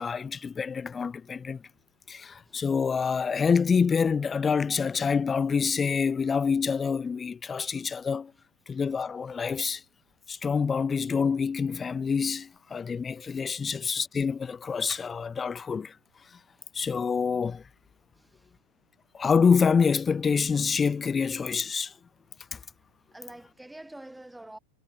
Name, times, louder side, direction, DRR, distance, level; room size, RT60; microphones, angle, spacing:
voice 1, 0.0-1.6 2.1-8.3 8.7-9.8 10.3-16.0 16.7-17.6 19.1-21.9 22.5-22.6, left 5 dB, 15° left, 0.3 m, -26 dB
voice 2, 23.1-24.6, right 1 dB, 5° right, 2.9 m, -46 dB
figure-of-eight pair, 90°, 0 cm